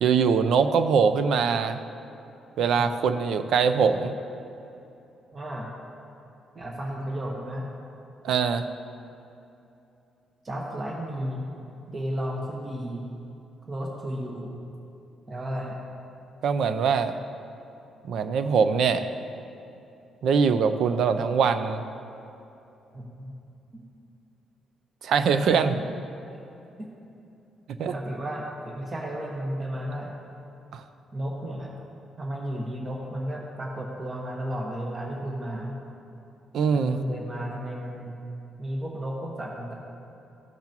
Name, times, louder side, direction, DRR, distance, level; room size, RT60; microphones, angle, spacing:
voice 1, 0.0-1.8 2.6-4.1 8.2-8.6 16.4-17.2 18.0-19.1 20.2-21.8 25.0-25.8 27.8-27.9 30.7-30.8 36.5-37.0, right 6 dB, 70° right, 10 dB, 0.5 m, -22 dB
voice 2, 2.6-2.9 5.3-5.7 6.5-7.7 10.4-11.5 11.9-13.1 13.7-14.5 15.3-15.8 22.9-23.3 23.7-23.9 25.5-25.9 26.8-26.9 27.9-30.1 31.1-31.7 32.2-35.8 36.7-38.1 38.6-39.7, equal, 35° right, -1 dB, 1.2 m, -33 dB
15.0 x 5.8 x 3.0 m, 2.8 s
cardioid pair, 90°, 0 cm